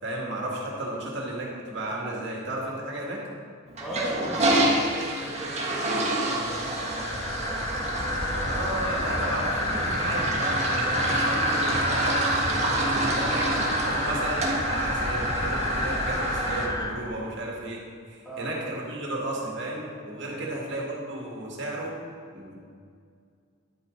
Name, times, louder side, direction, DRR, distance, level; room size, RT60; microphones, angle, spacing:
voice 1, 0.0-3.2 8.4-12.6 12.9-13.5 13.8-17.8 18.1-21.9 22.3-22.5, right 1 dB, 65° right, -3 dB, 2.3 m, -33 dB
Toilet flush, 3.7-16.7, right 1 dB, 35° right, 1.5 m, -28 dB
voice 2, 3.8-7.6 18.2-18.5 20.2-20.5, right 1 dB, ahead, -9 dB, 2.0 m, -38 dB
sound 1, 6.5-16.9, left 1 dB, 20° left, 0.7 m, -29 dB
11.0 x 8.7 x 4.0 m, 2.2 s
head